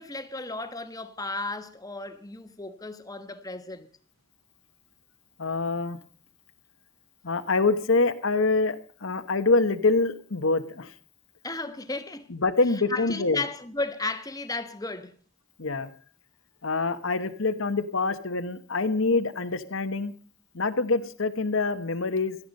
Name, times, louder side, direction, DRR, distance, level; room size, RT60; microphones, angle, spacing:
voice 1, 0.0-3.9 11.4-12.3 12.9-15.1, left 3 dB, 15° left, 1.2 m, -34 dB
voice 2, 5.4-6.0 7.2-10.9 12.3-13.4 15.6-15.9 16.6-20.1 20.5-22.4, left 3 dB, 75° left, 1.2 m, -25 dB
17.0 x 13.0 x 5.4 m
head